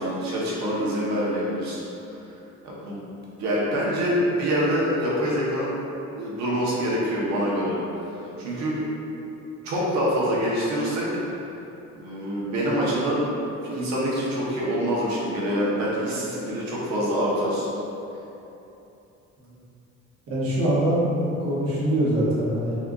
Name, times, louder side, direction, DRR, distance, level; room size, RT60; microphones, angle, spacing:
voice 1, 0.0-1.8 2.6-3.0 3.4-5.7 6.2-7.8 8.4-8.8 9.6-11.1 12.0-17.7, equal, 70° right, -5 dB, 1.0 m, -25 dB
voice 2, 20.3-22.8, right 1 dB, 50° right, -8 dB, 1.2 m, -24 dB
4.2 x 2.4 x 3.8 m, 2.9 s
cardioid pair, 175°, 29 cm